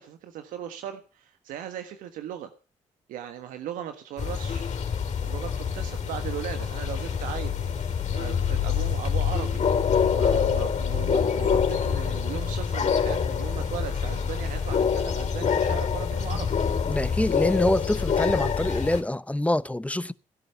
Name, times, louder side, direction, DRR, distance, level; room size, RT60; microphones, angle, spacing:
voice 1, 0.0-2.5 3.1-4.7 5.2-7.9 8.1-9.6 10.1-16.6, right 10 dB, 80° right, 1.4 m, -37 dB
sound 1, 4.2-19.0, left 7 dB, 55° left, 3.6 m, -26 dB
voice 2, 16.9-20.1, left 1 dB, 10° left, 0.8 m, -25 dB
16.5 x 10.5 x 5.7 m
supercardioid pair, 50°, 14 cm